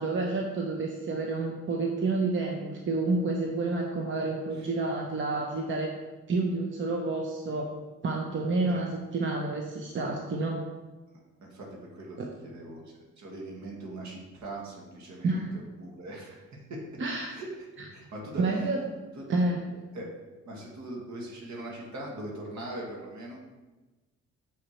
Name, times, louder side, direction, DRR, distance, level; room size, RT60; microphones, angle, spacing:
voice 1, 0.0-5.9 6.3-7.7 8.0-10.6 12.2-12.3 15.2-15.6 17.0-17.3 17.8-17.9 18.4-18.8 19.3-19.8, right 3 dB, 40° right, 1 dB, 0.9 m, -29 dB
voice 2, 11.1-12.2 12.4-12.8 13.2-16.4 16.7-16.8 17.3-17.5 17.8-18.7 19.2-19.3 19.9-20.1 20.5-23.4, right 1 dB, 65° right, -2 dB, 2.1 m, -41 dB
7.1 x 4.9 x 4.4 m, 1.2 s
cardioid pair, 90°, 30 cm